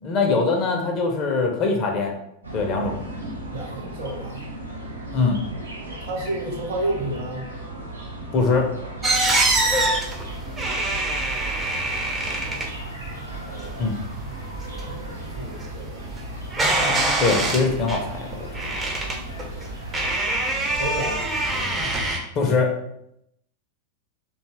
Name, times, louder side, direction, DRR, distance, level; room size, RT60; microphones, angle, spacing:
voice 1, 0.0-2.1 2.5-3.0 5.1-5.4 8.3-8.7 13.8-14.0 17.2-18.7 22.4-22.7, left 4 dB, 35° left, 2 dB, 0.5 m, -22 dB
sound 1, 2.4-22.1, right 1 dB, 80° right, 0.7 m, -36 dB
voice 2, 3.5-4.4 5.9-7.5 10.4-11.0 13.4-14.3 14.7-16.0 20.7-21.2, right 1 dB, 50° right, 0 dB, 0.9 m, -32 dB
sound 2, 9.0-22.2, right 2 dB, 15° right, 0.5 m, -25 dB
2.6 x 2.3 x 2.9 m, 0.76 s
figure-of-eight pair, 90°, 0 cm